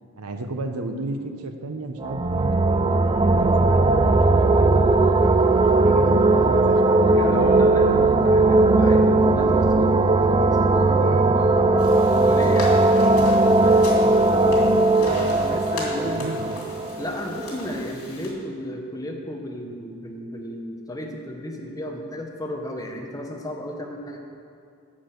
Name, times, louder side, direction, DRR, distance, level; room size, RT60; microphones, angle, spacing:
voice 1, 0.2-7.3 11.3-11.7 16.0-16.8, right 2 dB, 90° right, 7 dB, 0.8 m, -34 dB
sound 1, 2.0-17.5, right 2 dB, 20° right, 0.3 m, -18 dB
voice 2, 7.1-11.7 12.1-16.2 17.0-24.2, left 1 dB, 15° left, 1 dB, 1.0 m, -34 dB
sound 2, 11.8-18.3, left 2 dB, 80° left, 2.7 m, -39 dB
10.5 x 6.3 x 7.8 m, 2.4 s
head